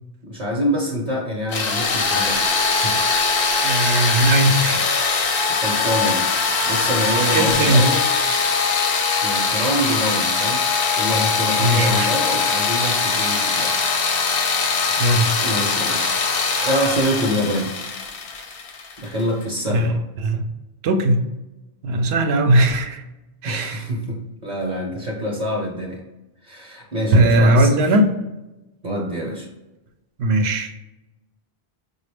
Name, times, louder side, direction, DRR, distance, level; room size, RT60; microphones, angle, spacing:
voice 1, 0.2-3.0 5.5-6.4 6.6-8.0 9.2-10.6 10.9-13.9 15.4-16.3 16.6-17.7 19.0-20.0 23.4-26.0 26.4-27.9 28.8-29.5, equal, 50° right, -1 dB, 0.8 m, -26 dB
sound 1, 1.5-19.2, left 4 dB, 65° left, 0.8 m, -21 dB
voice 2, 3.6-4.9 5.3-5.6 7.3-7.9 11.6-12.1 15.0-15.3 19.7-19.9 20.2-20.4 20.8-21.3 21.8-23.0 23.4-23.8 27.1-28.1 30.2-30.8, right 1 dB, 80° right, 5 dB, 0.8 m, -18 dB
4.9 x 2.3 x 3.3 m, 1.0 s
omnidirectional pair, 1.0 m